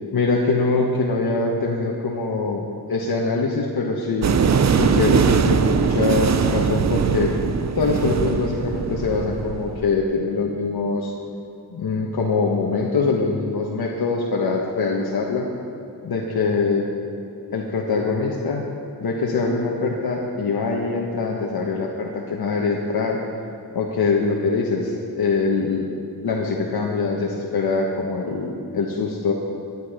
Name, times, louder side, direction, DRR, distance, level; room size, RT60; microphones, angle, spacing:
voice 1, 0.1-4.3 4.8-7.3 7.8-11.1 11.7-15.5 16.0-16.9 17.5-18.6 19.0-23.2 23.7-25.8 26.2-29.3, left 4 dB, 60° left, -2 dB, 1.2 m, -23 dB
sound 1, 4.2-9.8, right 6 dB, 45° right, 0.6 m, -21 dB
11.5 x 10.0 x 4.9 m, 2.8 s
cardioid pair, 70°, 40 cm